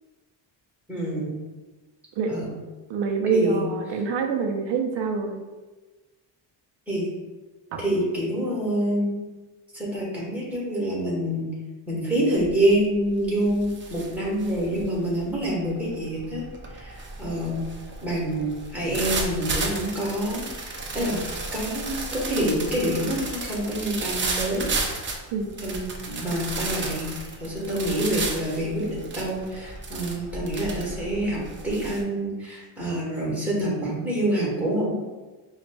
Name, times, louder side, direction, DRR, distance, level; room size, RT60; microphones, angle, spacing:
voice 1, 0.9-1.3 2.3-2.5 3.3-3.7 6.9-7.1 7.8-9.1 9.7-11.5 11.9-16.4 16.7-17.7 18.0-21.3 21.5-24.7 25.6-27.1 27.4-34.9, right 1 dB, 5° right, -5 dB, 1.2 m, -27 dB
voice 2, 2.2-2.5 2.9-5.4 7.7-7.8 25.3-25.5, right 4 dB, 70° right, 4 dB, 0.6 m, -25 dB
sound 1, 12.4-12.7 13.1-32.0, right 3 dB, 25° right, 0.4 m, -33 dB
5.2 x 2.4 x 2.2 m, 1.2 s
cardioid pair, 125°, 46 cm